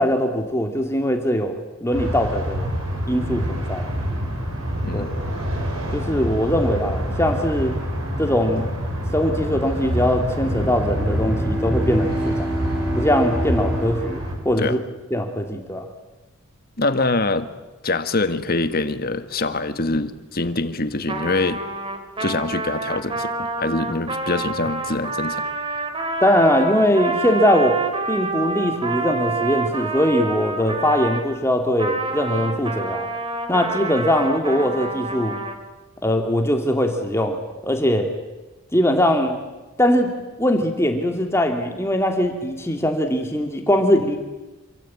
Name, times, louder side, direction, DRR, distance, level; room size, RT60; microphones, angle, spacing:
voice 1, 0.0-2.7 3.1-3.9 4.9-5.1 5.9-7.8 8.2-8.7 9.1-12.5 12.9-14.8 15.1-15.9 26.2-27.8 28.1-33.1 33.5-35.4 36.0-38.1 38.7-39.4 39.8-40.1 40.4-44.2, equal, 10° left, 4 dB, 2.3 m, -21 dB
sound 1, 1.9-14.4, equal, 70° right, 7.2 m, -26 dB
voice 2, 4.8-5.1 14.6-14.8 16.8-17.5 17.8-21.6 22.2-25.4, left 2 dB, 45° left, 10 dB, 1.6 m, -24 dB
Bowed string instrument, 10.7-15.5, equal, 5° right, 2.8 m, -30 dB
Trumpet, 21.1-31.3 31.8-35.6, right 3 dB, 25° right, 2.8 m, -28 dB
27.5 x 25.5 x 8.6 m, 1.1 s
head